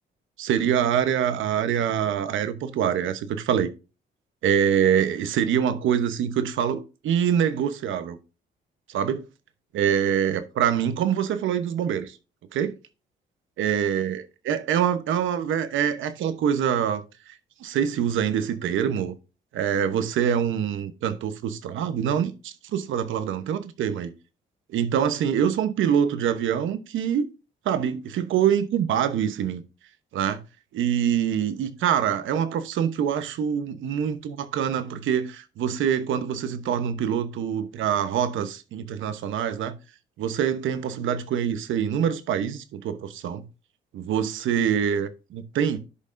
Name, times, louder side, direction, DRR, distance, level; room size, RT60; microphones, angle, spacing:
voice 1, 0.4-3.7 4.4-8.2 8.9-9.2 9.7-12.2 12.5-12.7 13.6-17.3 17.6-19.2 19.5-24.1 24.7-27.3 27.6-29.6 30.1-30.4 30.7-39.7 40.2-43.4 43.9-45.8, right 8 dB, 80° right, 1.0 m, -25 dB
12.5 x 5.4 x 2.6 m
cardioid pair, 90°, 20 cm